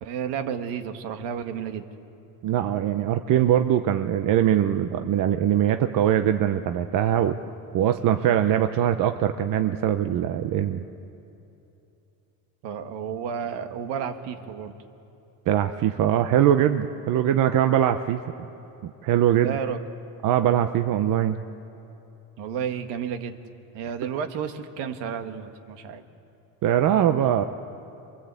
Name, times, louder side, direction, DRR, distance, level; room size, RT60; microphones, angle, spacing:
voice 1, 0.0-1.9 12.6-14.8 19.4-19.8 22.4-23.4 23.7-26.0, right 7 dB, 70° right, 7 dB, 1.8 m, -31 dB
voice 2, 2.4-7.4 7.7-10.8 15.5-18.2 18.8-19.6 20.2-21.4 26.6-27.4, right 10 dB, 45° right, 8 dB, 0.8 m, -22 dB
27.5 x 22.5 x 8.3 m, 2.9 s
cardioid pair, 155°, 44 cm